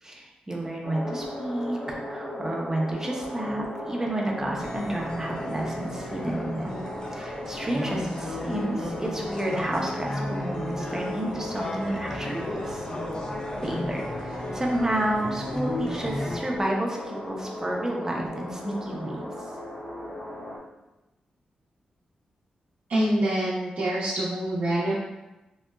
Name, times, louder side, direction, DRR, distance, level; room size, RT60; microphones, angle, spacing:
voice 1, 0.0-12.8 13.6-19.3, right 1 dB, 20° right, -2 dB, 0.7 m, -31 dB
sound 1, 0.8-20.6, left 1 dB, 70° left, 0.9 m, -37 dB
sound 2, 4.6-16.4, left 1 dB, 30° left, 0.5 m, -34 dB
voice 2, 22.9-24.9, right 1 dB, 65° right, -9 dB, 0.7 m, -25 dB
3.8 x 2.0 x 2.3 m, 1.0 s
cardioid pair, 55°, 3 cm